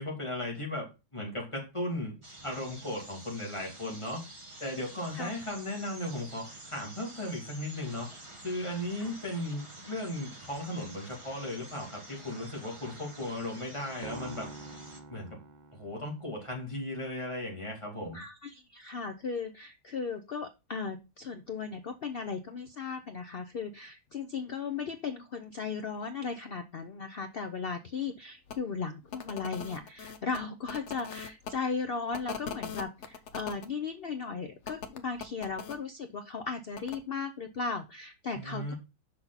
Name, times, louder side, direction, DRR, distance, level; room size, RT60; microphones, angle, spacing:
voice 1, 0.0-2.1 2.4-4.2 4.6-8.1 8.4-14.5 15.1-15.4 15.7-18.2 38.3-38.7, left 1 dB, 15° left, -2 dB, 2.4 m, -36 dB
sound 1, 2.2-15.0, right 1 dB, 20° right, 1.3 m, -49 dB
sound 2, 14.0-16.4, right 3 dB, 55° right, 0.5 m, -45 dB
voice 2, 18.1-38.7, left 5 dB, 90° left, 9 dB, 0.5 m, -36 dB
sound 3, 28.5-28.6 29.1-31.5 32.1-33.7 34.6-35.8 36.7-37.0, left 6 dB, 55° left, 0.9 m, -41 dB
6.5 x 5.8 x 4.0 m, 0.28 s
omnidirectional pair, 1.8 m